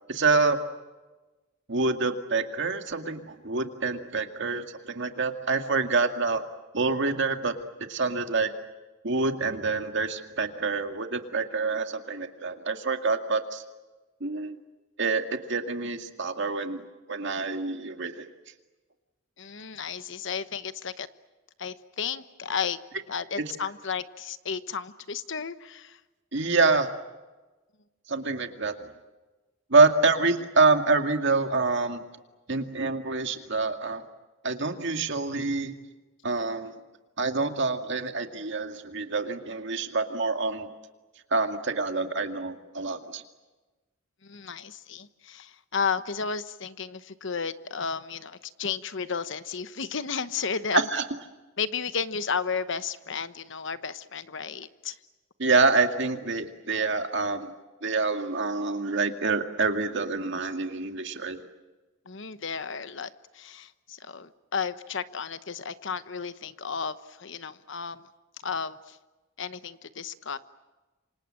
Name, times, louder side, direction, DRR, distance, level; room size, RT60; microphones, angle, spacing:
voice 1, 0.1-0.6 1.7-6.4 6.7-7.5 7.9-8.5 9.0-13.6 14.2-14.6 15.0-18.3 23.4-23.5 26.3-26.9 28.1-28.9 29.7-32.0 32.5-34.0 34.4-35.7 36.2-36.7 37.2-40.7 41.3-43.2 50.7-51.0 55.4-57.5 57.8-61.4, right 3 dB, 60° right, 6 dB, 2.1 m, -26 dB
voice 2, 19.4-21.1 21.6-22.8 23.1-26.0 44.2-50.9 51.6-55.0 62.1-68.1 68.4-69.0 69.4-70.4, left 6 dB, 65° left, 12 dB, 1.1 m, -33 dB
28.0 x 25.5 x 7.6 m, 1.2 s
head